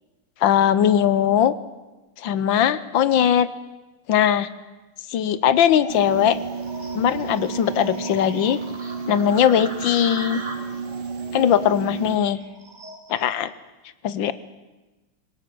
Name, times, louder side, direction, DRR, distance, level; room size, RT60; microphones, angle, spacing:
voice 1, 0.4-1.5 2.2-3.5 4.1-4.5 5.1-6.4 6.9-8.6 9.1-10.4 11.3-12.4 13.1-13.5 14.0-14.3, left 9 dB, 65° left, 15 dB, 1.4 m, -19 dB
sound 1, 5.8-13.3, right 1 dB, 20° right, 2.1 m, -38 dB
sound 2, 5.9-12.2, right 5 dB, 70° right, 1.9 m, -32 dB
21.0 x 18.0 x 7.7 m, 1.1 s
omnidirectional pair, 2.4 m